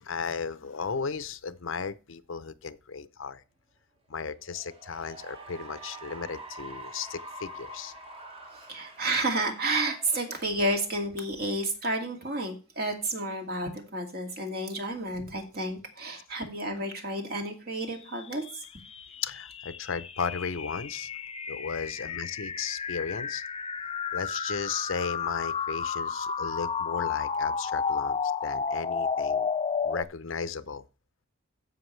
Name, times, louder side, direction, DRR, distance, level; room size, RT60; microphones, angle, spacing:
voice 1, 0.0-3.4 4.1-7.9 19.2-21.1 21.5-23.4 24.1-29.5 29.8-30.8, left 5 dB, 70° left, 0.7 m, -35 dB
Cheering / Applause, 4.4-11.1, right 1 dB, 30° right, 1.4 m, -45 dB
voice 2, 8.5-18.4, right 2 dB, 50° right, 2.3 m, -31 dB
sound 1, 18.2-30.0, left 6 dB, 30° left, 0.5 m, -32 dB
15.0 x 5.8 x 3.3 m
head